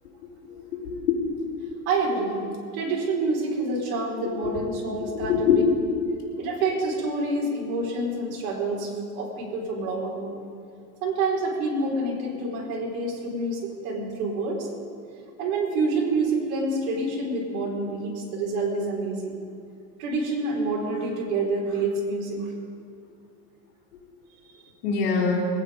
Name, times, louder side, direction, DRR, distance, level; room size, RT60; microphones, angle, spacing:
voice 1, 0.7-1.2 4.2-4.6 5.1-5.6 24.8-25.5, left 6 dB, 70° left, -6 dB, 3.1 m, -24 dB
voice 2, 1.9-2.4 2.7-5.5 6.4-10.4 11.0-14.7 15.4-19.4 20.0-22.5, right 3 dB, 65° right, -2 dB, 4.3 m, -27 dB
21.0 x 9.6 x 5.1 m, 2.4 s
supercardioid pair, 150°, 45 cm